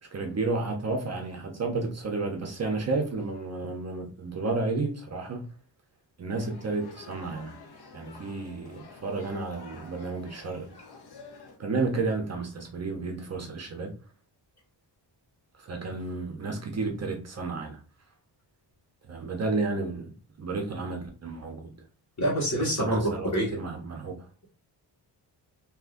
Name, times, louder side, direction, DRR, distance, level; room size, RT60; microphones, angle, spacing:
voice 1, 0.0-5.5 6.2-7.6 7.9-10.7 11.6-13.9 15.6-17.8 19.1-20.1 20.4-21.7 22.6-24.3, right 3 dB, 35° right, 0.6 m, -32 dB
sound 1, 6.3-11.6, left 4 dB, 60° left, 0.9 m, -49 dB
voice 2, 22.2-23.5, right 1 dB, 40° left, 1.6 m, -27 dB
3.7 x 2.8 x 2.5 m
wide cardioid pair, 150°, 43 cm